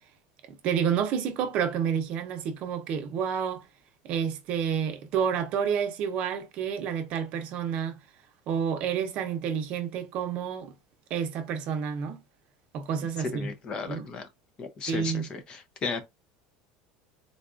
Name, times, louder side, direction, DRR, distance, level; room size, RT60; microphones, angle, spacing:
voice 1, 0.6-3.6 4.0-7.9 8.5-10.7 11.1-12.2 12.7-13.5 13.9-14.1 14.9-15.3, right 7 dB, 45° right, 0.7 m, -29 dB
voice 2, 13.2-14.3 14.6-16.0, left 4 dB, 30° left, 0.6 m, -34 dB
3.9 x 2.3 x 2.5 m
supercardioid pair, 145°, 3 cm